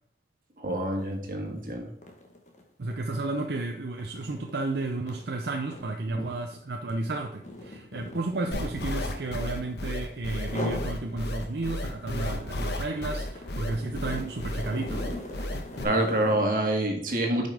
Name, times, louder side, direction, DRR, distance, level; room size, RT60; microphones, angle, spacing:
voice 1, 0.6-1.9 6.2-6.3 15.8-17.5, right 1 dB, 50° right, 1 dB, 1.7 m, -27 dB
sound 1, 0.9-1.1 1.5-9.9 10.4-10.9 11.4-16.5, left 1 dB, 40° left, 1.3 m, -41 dB
voice 2, 2.8-15.1, right 2 dB, 70° right, 3 dB, 0.6 m, -32 dB
sound 2, 8.5-15.8, left 1 dB, 75° left, 1.2 m, -33 dB
9.1 x 5.3 x 3.6 m, 0.68 s
head